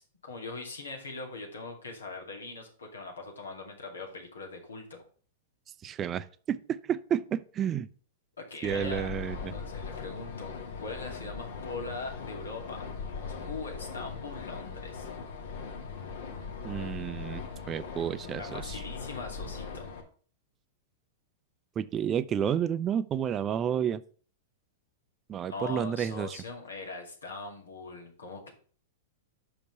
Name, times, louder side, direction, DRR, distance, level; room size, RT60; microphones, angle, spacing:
voice 1, 0.0-5.0 8.4-9.1 9.5-12.8 13.1-15.1 18.4-19.9 25.4-28.5, left 3 dB, 90° left, 2.5 m, -41 dB
voice 2, 5.8-7.9 8.6-9.5 16.6-18.8 21.8-24.0 25.3-26.4, right 9 dB, 30° right, 0.5 m, -31 dB
sound 1, 8.6-20.0, left 5 dB, 70° left, 1.8 m, -40 dB
5.9 x 5.3 x 6.7 m
hypercardioid pair, 110°, 0 cm